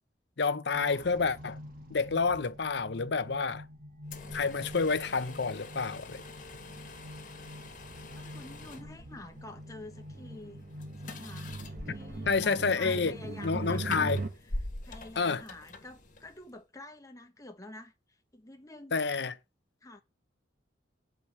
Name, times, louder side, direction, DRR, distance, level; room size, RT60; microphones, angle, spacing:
voice 1, 0.4-1.6 1.9-3.6 4.3-6.2 12.3-13.1 13.4-14.2 15.2-15.4 18.9-19.3, left 4 dB, 60° left, 0.7 m, -29 dB
sound 1, 0.7-14.3, right 2 dB, 50° right, 1.6 m, -42 dB
sound 2, 4.0-16.6, left 2 dB, 45° left, 1.6 m, -45 dB
voice 2, 8.1-10.7 11.0-14.1 14.8-19.0 19.8-20.0, left 2 dB, 15° left, 1.2 m, -48 dB
8.3 x 5.0 x 7.2 m
head